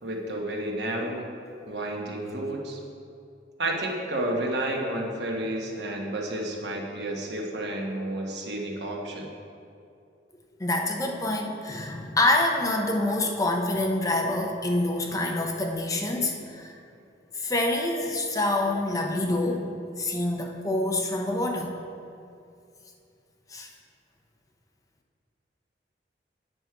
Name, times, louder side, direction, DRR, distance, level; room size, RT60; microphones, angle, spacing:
voice 1, 0.0-1.3 1.7-2.8 3.6-9.3, right 1 dB, 75° right, 0 dB, 1.2 m, -31 dB
voice 2, 10.6-16.7 17.3-19.7 20.0-21.8 23.5-23.7, left 2 dB, 20° left, 2 dB, 0.6 m, -26 dB
8.8 x 6.2 x 4.7 m, 2.5 s
head